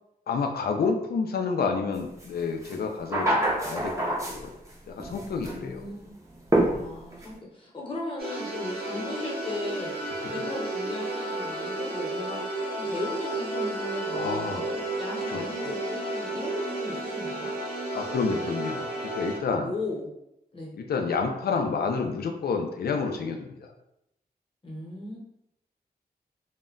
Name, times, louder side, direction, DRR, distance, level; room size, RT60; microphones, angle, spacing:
voice 1, 0.3-3.9 4.3-4.5 4.9-5.8 10.3-10.4 14.1-14.7 15.3-15.7 17.9-18.9 19.2-19.7 20.8-23.7, left 5 dB, 75° left, 3 dB, 0.4 m, -29 dB
sound 1, 2.2-2.3 2.6-4.7 5.0-5.6 6.5-7.3, right 1 dB, 20° right, 0.5 m, -26 dB
voice 2, 5.4-6.1 6.7-17.5 19.6-20.1 20.5-20.7 24.6-25.2, left 2 dB, 35° left, -4 dB, 0.8 m, -37 dB
sound 2, 8.2-19.4, right 2 dB, 70° right, 0.8 m, -32 dB
2.1 x 2.1 x 3.7 m, 0.82 s
wide cardioid pair, 160°, 16 cm